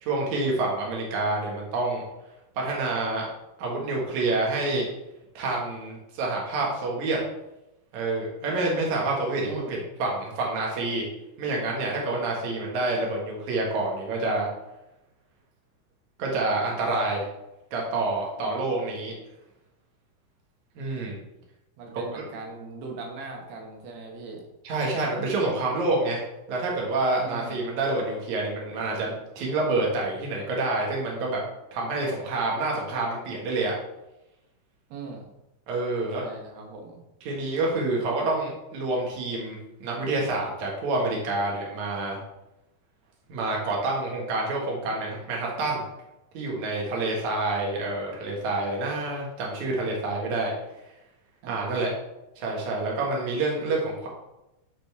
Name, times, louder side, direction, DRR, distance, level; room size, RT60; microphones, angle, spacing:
voice 1, 0.0-2.0 2.6-3.3 3.6-4.8 5.3-7.2 7.9-11.0 11.4-14.5 16.2-17.3 17.7-19.1 20.8-21.2 21.9-22.2 24.6-26.2 26.5-31.4 31.7-33.7 35.7-36.2 37.2-42.2 43.3-45.8 46.3-50.5 51.5-51.9 52.4-54.1, right 2 dB, 55° right, -2 dB, 2.8 m, -28 dB
voice 2, 9.4-9.8 18.4-18.6 21.8-24.4 25.5-25.7 27.2-27.6 34.9-35.3 36.1-37.0 51.4-51.9, right 3 dB, 85° right, 1 dB, 3.3 m, -40 dB
12.0 x 4.1 x 3.6 m, 0.93 s
omnidirectional pair, 4.6 m